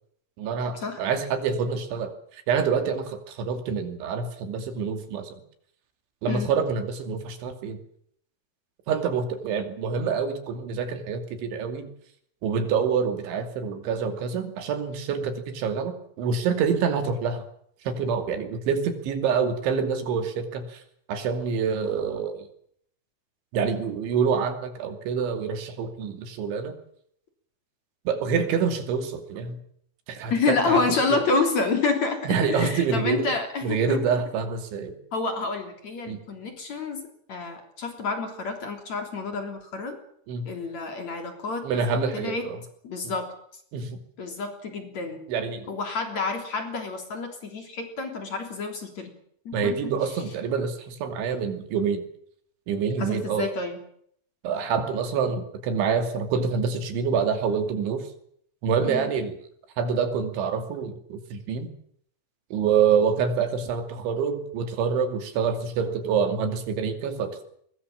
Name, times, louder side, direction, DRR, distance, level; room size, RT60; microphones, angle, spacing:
voice 1, 0.4-5.4 6.2-7.8 8.9-11.9 12.4-17.4 17.9-20.8 21.1-22.5 23.5-26.7 28.1-29.6 30.1-30.8 32.3-33.3 33.6-35.0 36.1-36.2 40.3-40.5 41.6-42.6 43.0-43.1 43.7-44.0 45.3-45.7 49.5-52.1 52.7-53.5 54.4-58.1 58.6-59.4 59.8-61.7 62.5-67.4, right 6 dB, 75° right, 7 dB, 5.0 m, -26 dB
voice 2, 30.3-34.0 35.1-40.0 40.5-41.7 42.1-42.5 42.8-43.3 44.2-45.2 45.7-49.1 49.5-49.9 53.0-53.8 58.9-59.1, left 4 dB, 40° left, 5 dB, 4.1 m, -28 dB
22.0 x 22.0 x 7.4 m, 0.65 s
omnidirectional pair, 5.4 m